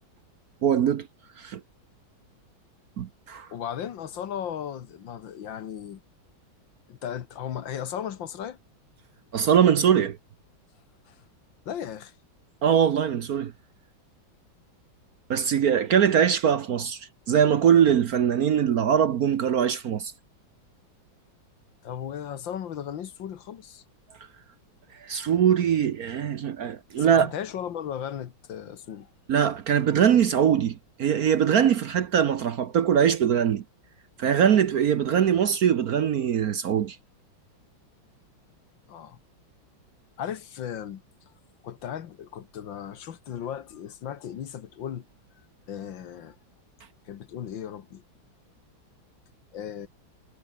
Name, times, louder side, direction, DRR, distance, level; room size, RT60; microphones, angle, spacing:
voice 1, 0.6-1.1 1.4-1.6 3.0-3.5 9.3-10.2 12.6-13.5 15.3-20.1 25.0-27.3 29.3-33.6 34.2-37.0, right 8 dB, 55° right, 1.2 m, -22 dB
voice 2, 3.5-6.0 6.9-8.6 11.1-11.2 11.7-12.1 21.8-23.8 27.1-29.1 38.9-39.2 40.2-41.0 41.6-45.0 45.7-46.4 47.1-48.0 49.5-49.9, left 9 dB, 70° left, 2.0 m, -36 dB
omnidirectional pair, 2.2 m